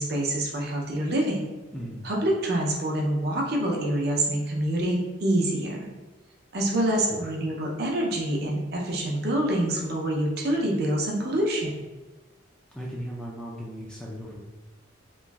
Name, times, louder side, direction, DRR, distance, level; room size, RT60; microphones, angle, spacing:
voice 1, 0.0-1.5 2.0-5.9 6.5-11.7, right 1 dB, 50° right, -1 dB, 0.5 m, -26 dB
voice 2, 1.7-2.1 7.1-7.3 12.7-14.4, equal, 5° left, -4 dB, 0.3 m, -37 dB
3.0 x 2.4 x 2.3 m, 1.2 s
head